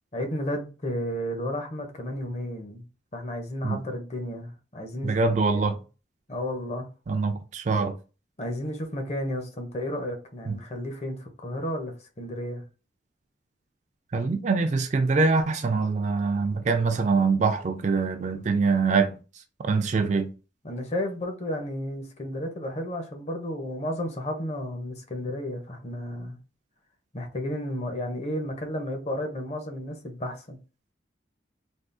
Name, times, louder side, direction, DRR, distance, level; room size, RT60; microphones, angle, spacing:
voice 1, 0.1-2.9 3.1-5.2 5.4-5.7 6.3-6.9 8.4-12.6 20.6-26.4 27.1-30.6, left 1 dB, 35° left, 0.6 m, -32 dB
voice 2, 5.0-5.8 7.1-8.0 10.5-10.6 14.1-19.1 19.6-20.3, right 4 dB, 40° right, 0.3 m, -24 dB
3.6 x 2.3 x 2.5 m
head